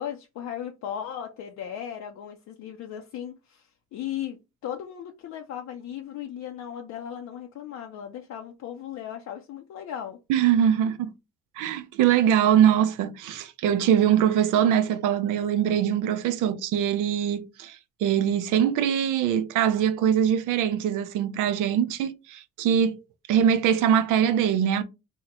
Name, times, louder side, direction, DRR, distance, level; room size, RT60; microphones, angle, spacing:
voice 1, 0.0-10.2, left 9 dB, 65° left, 0.5 m, -37 dB
voice 2, 10.3-11.1 11.6-23.0 23.3-24.8, right 9 dB, 85° right, 0.5 m, -22 dB
3.6 x 2.1 x 2.9 m
cardioid pair, 90°, 30 cm